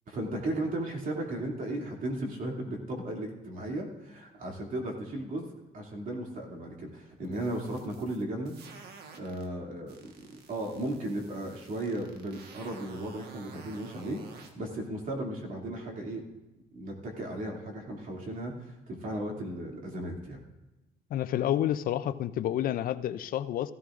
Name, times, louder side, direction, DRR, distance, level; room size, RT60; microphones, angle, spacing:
voice 1, 0.1-8.5 9.1-10.1 10.5-16.2 16.7-20.4, right 1 dB, 55° right, 0 dB, 2.6 m, -35 dB
sound 1, 7.2-9.5 9.9-14.5, right 5 dB, 75° right, 1.4 m, -51 dB
voice 2, 21.1-23.7, left 11 dB, 60° left, 14 dB, 0.5 m, -29 dB
15.0 x 14.0 x 2.5 m, 1.0 s
cardioid pair, 110°, 17 cm